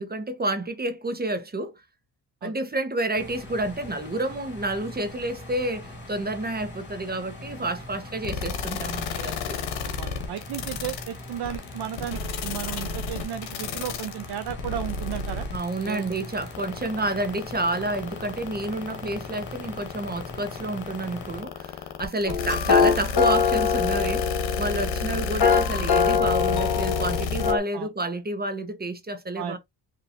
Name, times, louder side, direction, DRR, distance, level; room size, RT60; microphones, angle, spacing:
voice 1, 0.0-1.8 2.4-9.6 15.5-29.6, right 2 dB, 20° right, 1.2 m, -29 dB
sound 1, 3.1-21.4, left 1 dB, 25° left, 3.1 m, -42 dB
sound 2, 8.2-27.5, left 5 dB, 90° left, 1.1 m, -31 dB
voice 2, 9.8-15.5 15.8-16.1 22.3-22.4 27.7-27.9 29.4-29.6, right 10 dB, 60° right, 0.7 m, -34 dB
sound 3, 22.2-27.6, left 6 dB, 55° left, 1.6 m, -23 dB
4.4 x 3.0 x 2.7 m
cardioid pair, 85°, 44 cm